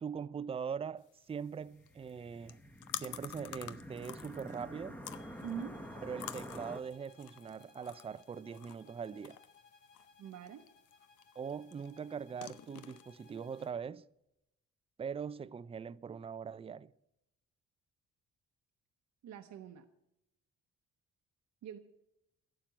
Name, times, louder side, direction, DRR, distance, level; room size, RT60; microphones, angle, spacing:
voice 1, 0.0-2.6 3.0-5.0 6.0-9.4 11.4-14.0 15.0-16.9, right 6 dB, 20° right, 0.4 m, -42 dB
sound 1, 1.0-13.7, left 12 dB, 80° left, 0.7 m, -50 dB
sound 2, 1.7-6.8, equal, 5° left, 1.1 m, -48 dB
sound 3, 5.1-13.8, left 5 dB, 35° left, 2.8 m, -64 dB
voice 2, 5.4-5.8 10.2-10.7 19.2-19.9 21.6-21.8, right 8 dB, 70° right, 0.9 m, -44 dB
11.5 x 7.5 x 8.8 m
cardioid pair, 90°, 30 cm